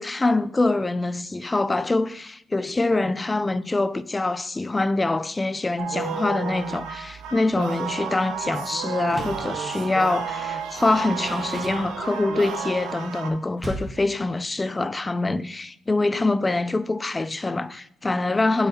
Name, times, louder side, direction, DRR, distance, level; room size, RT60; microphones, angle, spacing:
voice 1, 0.0-18.7, left 2 dB, 20° left, 0.4 m, -24 dB
sound 1, 5.8-13.3, right 6 dB, 85° right, 0.9 m, -32 dB
Door, 9.0-9.6 10.7-12.4 13.6-14.1, right 1 dB, 20° right, 1.7 m, -37 dB
8.8 x 4.0 x 4.2 m
supercardioid pair, 75°, 0 cm